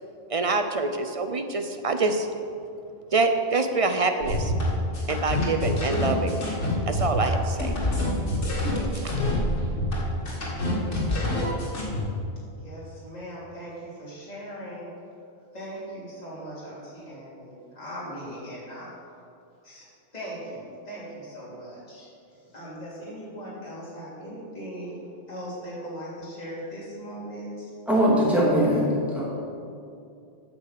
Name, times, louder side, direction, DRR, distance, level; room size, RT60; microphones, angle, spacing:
voice 1, 0.3-2.3 3.1-4.5 5.1-6.4 6.9-7.8 8.9-9.1, right 3 dB, 45° right, 7 dB, 0.4 m, -25 dB
sound 1, 4.2-12.0, left 1 dB, 70° left, 2.3 m, -26 dB
voice 2, 12.5-14.9 15.5-18.9 19.6-19.9 20.1-25.0 25.3-27.7, equal, 35° left, -8 dB, 3.0 m, -39 dB
voice 3, 27.9-29.2, equal, ahead, -7 dB, 2.8 m, -21 dB
9.0 x 6.2 x 7.4 m, 2.5 s
omnidirectional pair, 1.3 m